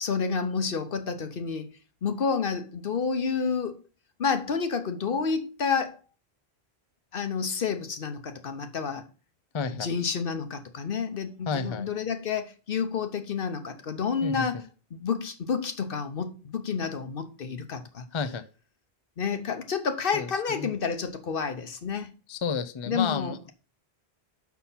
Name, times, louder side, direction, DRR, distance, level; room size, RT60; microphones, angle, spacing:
voice 1, 0.0-1.7 2.0-3.8 4.2-6.0 7.1-9.1 9.8-14.6 14.9-18.1 19.2-22.1 22.9-23.5, left 5 dB, 60° left, 1.1 m, -29 dB
voice 2, 9.5-9.9 11.5-11.9 14.2-14.6 18.1-18.4 20.1-20.7 22.3-23.5, left 5 dB, 35° left, 0.5 m, -31 dB
6.0 x 5.7 x 5.6 m
omnidirectional pair, 1.1 m